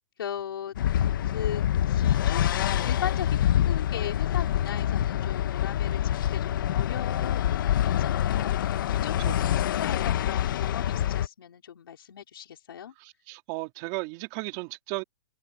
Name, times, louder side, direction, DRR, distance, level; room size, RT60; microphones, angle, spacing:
voice 1, 0.2-0.8 1.2-12.9, left 9 dB, 85° left, 5.2 m, -38 dB
sound 1, 0.8-11.3, left 11 dB, 65° left, 1.4 m, -26 dB
voice 2, 13.0-15.0, right 25 dB, 35° right, 3.5 m, -35 dB
hypercardioid pair, 155°, 12 cm